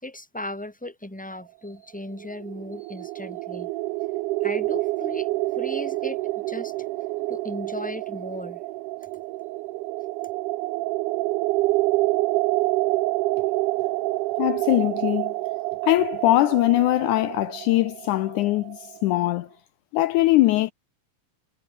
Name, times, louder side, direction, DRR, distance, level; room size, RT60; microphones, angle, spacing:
voice 1, 0.0-3.7 4.4-5.3 5.5-6.7 7.3-8.6, left 1 dB, ahead, 3.5 m, -36 dB
sound 1, 2.2-19.0, right 19 dB, 90° right, 1.8 m, -27 dB
voice 2, 14.4-15.3 15.8-19.5 19.9-20.7, left 17 dB, 85° left, 1.7 m, -21 dB
omnidirectional pair, 4.3 m